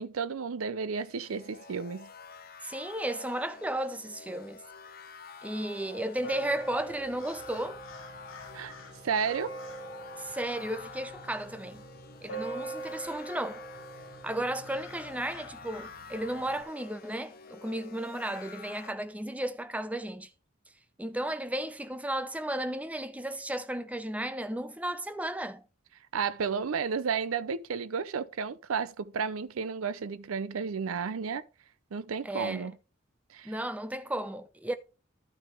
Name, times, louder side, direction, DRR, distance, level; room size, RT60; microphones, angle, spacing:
voice 1, 0.0-2.1 8.5-8.7 9.0-9.5 26.1-31.4 31.9-32.7 33.3-33.5, right 6 dB, 85° right, 0.5 m, -32 dB
sound 1, 1.0-18.9, left 5 dB, 45° left, 0.8 m, -49 dB
voice 2, 2.6-4.6 5.4-7.8 10.2-11.8 12.2-13.7 14.2-20.3 21.0-25.6 32.2-32.7 33.4-34.7, right 1 dB, 5° right, 0.5 m, -34 dB
sound 2, 6.2-16.6, right 2 dB, 85° left, 2.1 m, -43 dB
12.0 x 6.1 x 3.4 m
head